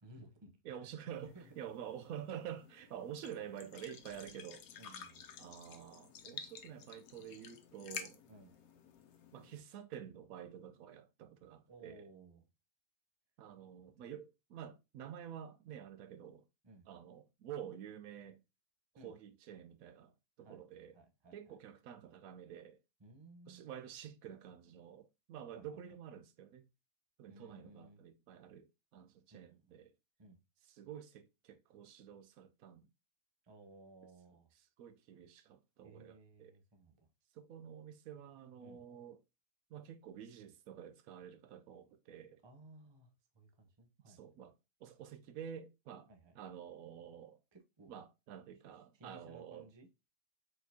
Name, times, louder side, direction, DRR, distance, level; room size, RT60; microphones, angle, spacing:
voice 1, 0.0-0.9 1.2-1.7 4.8-5.3 8.3-8.5 11.7-12.5 16.6-16.9 19.0-19.2 20.4-20.6 20.9-21.6 23.0-23.7 25.5-25.8 27.3-28.0 29.3-29.8 30.2-30.4 33.4-34.5 35.8-37.1 38.6-38.8 42.4-44.2 46.1-46.4 47.5-48.0 48.9-49.9, right 2 dB, 25° right, 0.7 m, -58 dB
voice 2, 0.6-4.6 5.4-8.2 9.3-12.0 13.4-16.4 16.9-18.4 19.0-20.9 21.3-22.8 23.5-26.7 27.2-29.9 30.8-32.9 34.8-36.5 37.3-39.2 39.7-42.4 44.1-44.5 44.8-46.1 46.4-47.4 47.9-49.7, right 9 dB, 75° right, 1.0 m, -49 dB
sound 1, 1.1-9.6, left 7 dB, 85° left, 1.2 m, -52 dB
4.4 x 4.4 x 2.7 m
omnidirectional pair, 1.5 m